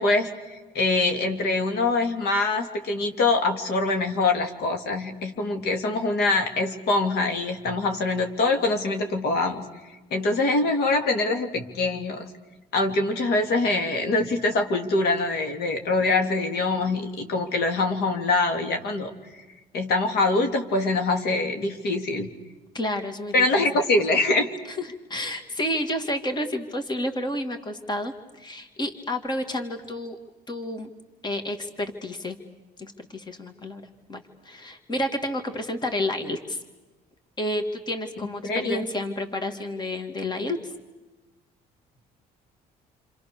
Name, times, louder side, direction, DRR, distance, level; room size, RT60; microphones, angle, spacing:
voice 1, 0.0-9.6 10.1-12.2 12.7-19.1 19.7-22.3 23.3-24.5 38.4-38.8, left 2 dB, 70° left, 5 dB, 3.0 m, -24 dB
voice 2, 22.7-23.5 24.8-30.2 30.5-30.9 31.2-32.4 32.8-33.8 34.1-36.6 37.4-40.6, left 1 dB, 25° left, 6 dB, 2.5 m, -30 dB
29.0 x 26.0 x 6.9 m, 1.2 s
cardioid pair, 110°, 17 cm